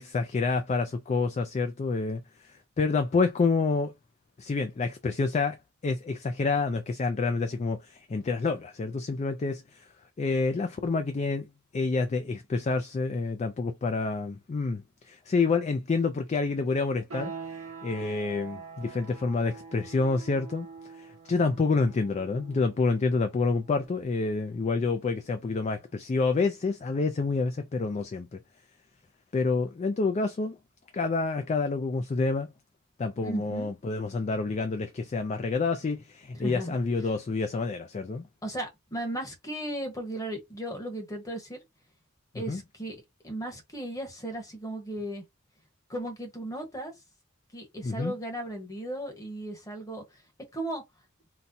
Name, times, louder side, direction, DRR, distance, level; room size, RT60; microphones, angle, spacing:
voice 1, 0.0-3.9 4.4-5.6 5.8-9.8 10.2-11.5 11.7-20.7 20.9-28.4 29.3-30.6 30.9-32.5 33.0-38.2 42.3-42.6 47.8-48.1, left 4 dB, 30° left, 0.3 m, -28 dB
sound 1, 17.1-27.6, right 5 dB, 80° right, 0.9 m, -46 dB
voice 2, 33.2-33.7 36.3-36.8 38.4-41.6 42.3-43.0 43.2-45.2 45.9-46.9 47.5-50.0 50.5-50.8, right 1 dB, 15° left, 1.0 m, -36 dB
4.0 x 2.1 x 2.6 m
head